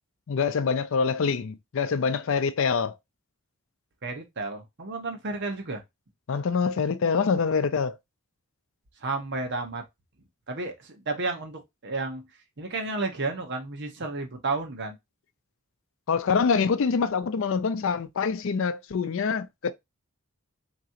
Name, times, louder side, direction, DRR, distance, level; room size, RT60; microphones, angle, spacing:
voice 1, 0.3-2.9 6.3-8.0 16.1-19.7, left 5 dB, 65° left, 0.4 m, -25 dB
voice 2, 4.0-5.8 9.0-9.8 10.5-12.2 12.6-15.0, right 3 dB, 60° right, 1.0 m, -32 dB
3.6 x 3.0 x 2.8 m
head